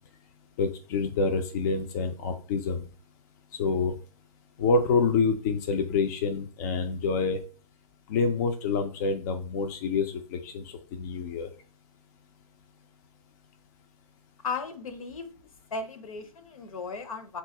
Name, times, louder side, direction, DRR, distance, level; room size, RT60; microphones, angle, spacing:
voice 1, 0.6-2.8 3.6-4.0 4.6-7.4 8.1-11.5, left 4 dB, 30° left, 5 dB, 0.4 m, -27 dB
voice 2, 14.4-15.3 15.7-17.4, left 4 dB, 65° left, 9 dB, 0.8 m, -35 dB
5.6 x 2.3 x 2.8 m, 0.38 s
figure-of-eight pair, 125°, 19 cm